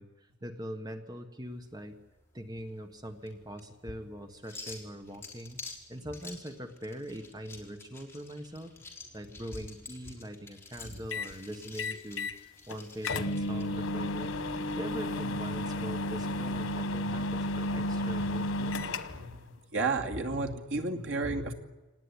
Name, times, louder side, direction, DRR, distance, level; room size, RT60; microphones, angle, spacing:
voice 1, 0.0-1.9 2.3-8.7 9.1-14.3 14.7-19.0, equal, 20° right, 6 dB, 1.4 m, -42 dB
sound 1, 1.5-13.6, left 3 dB, 10° left, 3.8 m, -50 dB
sound 2, 11.1-11.4 11.8-12.4 12.7-12.8 13.0-19.3, left 1 dB, 90° left, 1.2 m, -32 dB
voice 2, 19.7-21.5, right 3 dB, 80° right, 2 dB, 2.5 m, -32 dB
25.5 x 19.0 x 9.9 m, 1.2 s
head